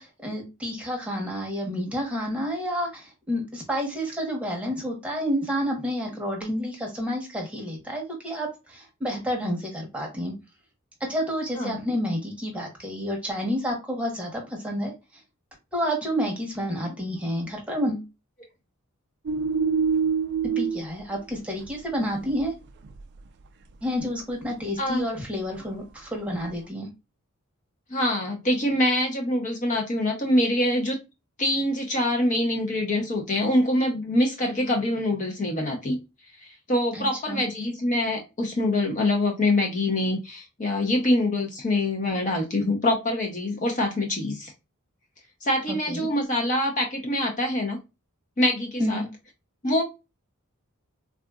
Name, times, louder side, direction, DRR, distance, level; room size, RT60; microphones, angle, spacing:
voice 1, 0.0-10.3 11.1-14.9 15.7-18.0 20.6-22.5 23.8-26.9 36.9-37.4 45.9-46.1 48.8-49.1, equal, 5° right, 0 dB, 0.9 m, -29 dB
sound 1, 19.3-20.9 21.4-21.7 22.0-22.5 22.8-23.3 23.9-24.0 26.4-26.5, right 6 dB, 50° right, 0.3 m, -25 dB
voice 2, 27.9-31.0 31.4-36.0 36.4-44.5 45.4-47.8 48.4-49.0 49.6-49.8, left 1 dB, 35° left, 1 dB, 0.6 m, -25 dB
3.7 x 2.4 x 2.2 m, 0.26 s
head